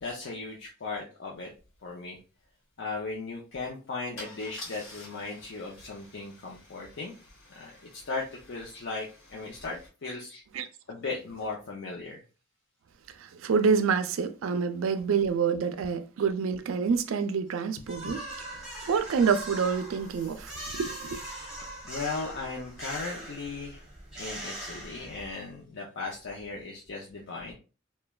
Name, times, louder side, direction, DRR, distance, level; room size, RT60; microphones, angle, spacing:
voice 1, 0.0-1.5 1.8-2.2 2.8-7.1 7.5-10.4 10.9-12.2 18.0-18.1 20.5-20.8 21.8-23.8 24.2-27.5, left 3 dB, 60° left, 0.6 m, -37 dB
Car / Engine starting / Idling, 1.5-1.6 1.9-2.2 4.2-9.9, left 2 dB, 80° left, 1.2 m, -49 dB
voice 2, 13.2-18.2 18.9-21.2, right 6 dB, 85° right, 0.4 m, -27 dB
sound 1, 17.8-25.5, right 1 dB, 5° right, 1.1 m, -41 dB
3.0 x 2.2 x 2.3 m
head